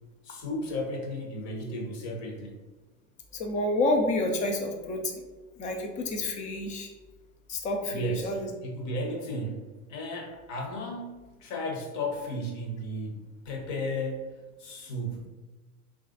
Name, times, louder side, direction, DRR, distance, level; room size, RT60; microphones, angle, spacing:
voice 1, 0.2-2.5 7.9-14.3 14.6-15.3, left 1 dB, 40° left, 1 dB, 0.9 m, -34 dB
voice 2, 3.3-5.2 5.6-6.9 7.5-8.5, left 1 dB, 20° left, 3 dB, 0.3 m, -29 dB
3.1 x 2.5 x 3.7 m, 1.2 s
hypercardioid pair, 95°, 44 cm